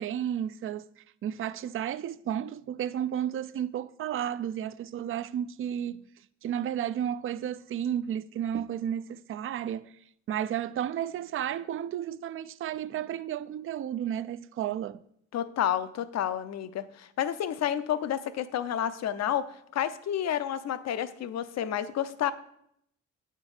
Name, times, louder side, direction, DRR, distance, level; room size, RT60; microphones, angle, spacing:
voice 1, 0.0-6.1 6.4-9.9 10.3-15.0, right 10 dB, 45° right, 0.4 m, -32 dB
voice 2, 15.3-22.3, left 10 dB, 60° left, 0.6 m, -30 dB
8.5 x 4.5 x 4.8 m
cardioid pair, 90°, 30 cm